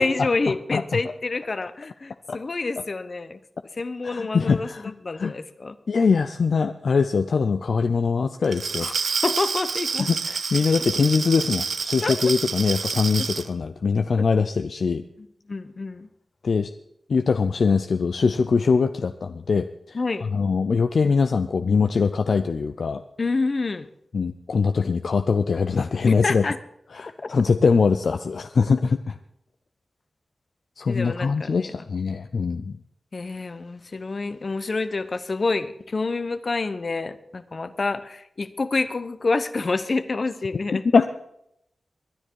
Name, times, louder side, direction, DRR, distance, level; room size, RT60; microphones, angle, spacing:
voice 1, 0.0-3.4 3.8-5.8 8.8-8.9 9.2-10.1 12.0-12.2 13.2-13.3 14.2-14.3 15.2-16.1 19.9-20.3 23.2-23.9 26.1-26.6 27.2-27.3 30.9-31.7 33.1-40.8, left 3 dB, 60° left, 13 dB, 0.9 m, -28 dB
voice 2, 4.0-5.3 5.9-8.9 10.0-15.0 16.4-16.7 17.1-23.0 24.1-26.5 26.9-29.2 30.8-32.8 40.7-41.1, left 5 dB, 80° left, 8 dB, 0.5 m, -22 dB
Glass, 8.4-13.5, right 5 dB, 85° right, 0.8 m, -28 dB
21.5 x 10.0 x 4.7 m, 0.76 s
cardioid pair, 40°, 0 cm